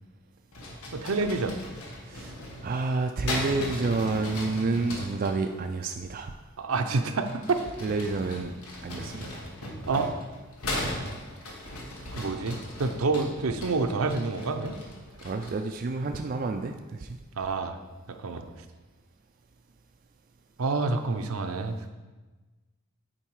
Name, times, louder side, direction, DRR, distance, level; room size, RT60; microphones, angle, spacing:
sound 1, 0.5-5.4 7.1-15.7, left 1 dB, 85° left, 1.4 m, -38 dB
voice 1, 0.9-1.6 6.6-7.7 9.9-10.1 12.1-14.8 17.4-17.8 18.1-18.4 20.6-21.9, right 3 dB, 75° right, 7 dB, 0.6 m, -28 dB
voice 2, 2.1-2.4 2.6-6.3 7.8-9.4 15.2-17.2, right 3 dB, 40° right, 4 dB, 0.3 m, -29 dB
8.8 x 4.6 x 4.7 m, 1.2 s
head